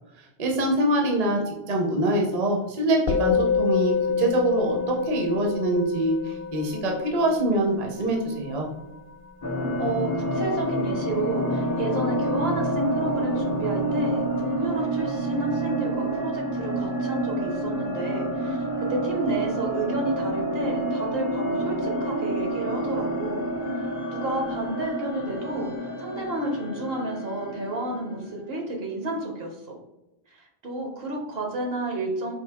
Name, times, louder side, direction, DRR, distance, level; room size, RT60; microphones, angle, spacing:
voice 1, 0.4-8.7, right 1 dB, 45° right, 0 dB, 0.7 m, -24 dB
Musical instrument, 3.1-12.6, left 6 dB, 70° left, 0.8 m, -29 dB
sound 1, 9.4-28.4, right 1 dB, 25° left, 0.4 m, -28 dB
voice 2, 9.8-18.6 18.9-23.4 24.1-29.8 30.6-32.3, right 2 dB, 65° right, 1 dB, 1.1 m, -31 dB
4.5 x 2.7 x 3.4 m, 0.95 s
omnidirectional pair, 1.1 m